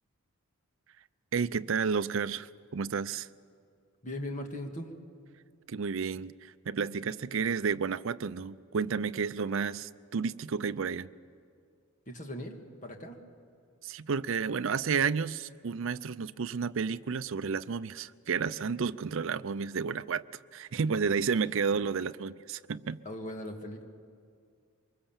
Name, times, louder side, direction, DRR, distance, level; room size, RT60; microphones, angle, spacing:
voice 1, 1.3-3.3 5.7-11.1 13.8-20.2 20.5-23.0, right 5 dB, 60° right, 0.5 m, -31 dB
voice 2, 4.0-4.9 12.1-13.2 23.1-23.9, left 1 dB, 35° left, 1.8 m, -39 dB
24.0 x 21.5 x 7.3 m
head